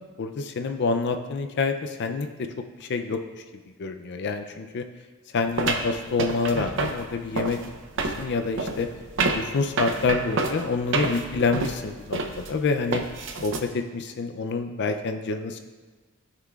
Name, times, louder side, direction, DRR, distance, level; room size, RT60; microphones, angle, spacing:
voice 1, 0.2-2.5 2.8-3.2 3.8-4.8 5.3-7.6 8.0-8.9 9.3-13.0 13.4-15.6, left 4 dB, 55° left, 7 dB, 0.4 m, -27 dB
sound 1, 5.6-13.6, right 3 dB, 65° right, 0.7 m, -28 dB
14.5 x 5.7 x 2.4 m, 1.3 s
head